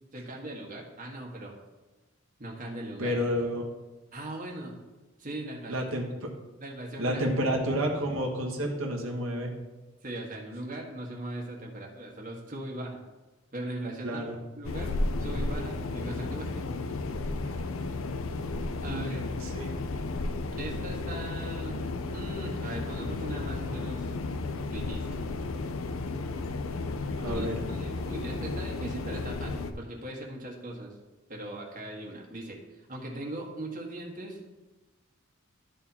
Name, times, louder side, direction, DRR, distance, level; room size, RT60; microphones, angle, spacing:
voice 1, 0.0-1.6 2.4-3.2 4.1-4.7 5.2-5.9 6.6-7.2 10.0-13.0 13.5-14.3 14.6-16.6 17.5-17.7 18.8-19.3 20.6-21.8 22.1-24.1 24.7-25.3 27.3-30.9 31.3-34.4, right 1 dB, 40° right, -1 dB, 1.5 m, -39 dB
voice 2, 3.0-3.7 5.7-6.1 7.0-9.5 14.0-14.3 18.8-19.1 19.4-19.8 27.2-27.5, equal, 85° right, -1 dB, 1.2 m, -30 dB
sound 1, 14.6-29.7, left 3 dB, 80° left, 0.6 m, -33 dB
12.5 x 4.3 x 4.2 m, 1.1 s
head